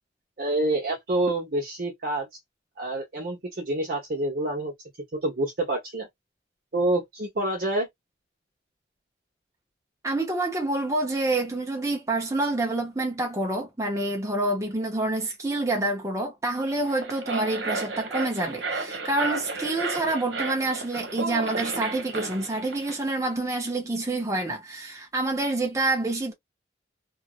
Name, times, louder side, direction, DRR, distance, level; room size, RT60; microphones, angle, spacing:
voice 1, 0.4-2.3 2.8-4.7 5.1-6.1 6.7-7.9, right 1 dB, 50° right, 1.0 m, -27 dB
voice 2, 10.0-26.3, right 2 dB, 15° right, 0.7 m, -27 dB
sound 1, 16.8-23.0, right 3 dB, 75° right, 1.0 m, -33 dB
2.9 x 2.7 x 2.4 m
head